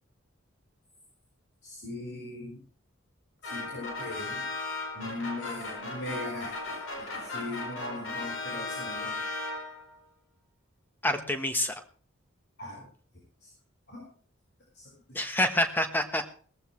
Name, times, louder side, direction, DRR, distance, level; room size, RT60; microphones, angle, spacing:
voice 1, 1.6-2.6 3.4-4.5 4.9-9.2 12.6-12.8 13.9-14.0 14.8-14.9, left 2 dB, 55° left, -3 dB, 5.5 m, -39 dB
sound 1, 3.4-10.0, left 2 dB, 85° left, 4.7 m, -36 dB
voice 2, 11.0-11.7 15.1-16.3, left 1 dB, 10° left, 7 dB, 1.2 m, -27 dB
18.5 x 14.5 x 3.2 m, 0.43 s
head